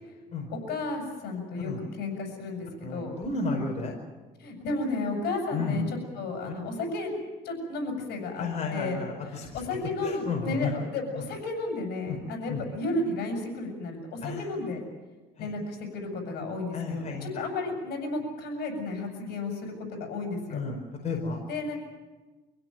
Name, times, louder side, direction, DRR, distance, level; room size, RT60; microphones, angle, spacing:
voice 1, 0.5-3.1 4.4-7.1 7.4-8.5 8.7-14.8 15.4-20.6 21.5-21.8, left 2 dB, 75° left, 3 dB, 7.4 m, -33 dB
voice 2, 2.8-3.9 5.5-5.8 8.4-9.6 10.0-10.7 11.1-11.2 12.1-12.2 12.5-12.6 14.2-14.5 15.4-15.5 16.7-17.4 20.5-20.8 21.0-21.4, left 4 dB, 45° left, 1 dB, 5.0 m, -32 dB
26.0 x 16.5 x 9.2 m, 1.2 s
cardioid pair, 110°, 17 cm